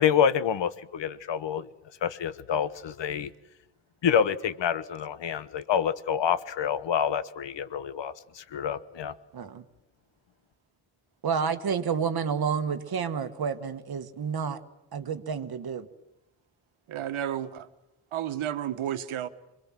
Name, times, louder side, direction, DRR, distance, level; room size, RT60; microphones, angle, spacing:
voice 1, 0.0-1.7 2.0-3.3 4.0-9.1, left 8 dB, 60° left, 14 dB, 1.1 m, -27 dB
voice 2, 9.3-9.6 11.2-14.6 14.9-15.9, right 6 dB, 50° right, 9 dB, 1.5 m, -30 dB
voice 3, 16.9-17.7 18.1-19.3, right 10 dB, 80° right, 10 dB, 1.4 m, -32 dB
27.0 x 22.5 x 7.4 m, 0.96 s
wide cardioid pair, 170°, 49 cm